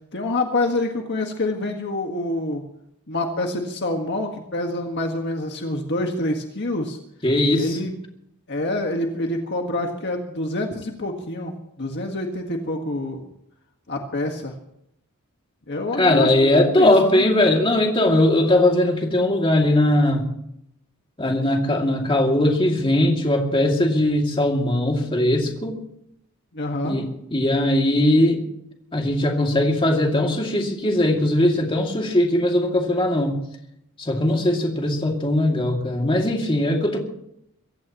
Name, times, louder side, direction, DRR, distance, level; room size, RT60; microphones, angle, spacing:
voice 1, 0.1-2.6 3.1-7.0 7.5-8.0 8.5-13.3 13.9-14.5 15.7-17.2 26.5-27.0, left 1 dB, 55° left, 3 dB, 1.7 m, -26 dB
voice 2, 7.2-7.8 16.0-20.3 21.2-25.8 26.8-28.4 28.9-33.4 34.0-37.0, left 1 dB, 25° left, 1 dB, 2.5 m, -20 dB
24.0 x 16.0 x 3.1 m, 0.77 s
head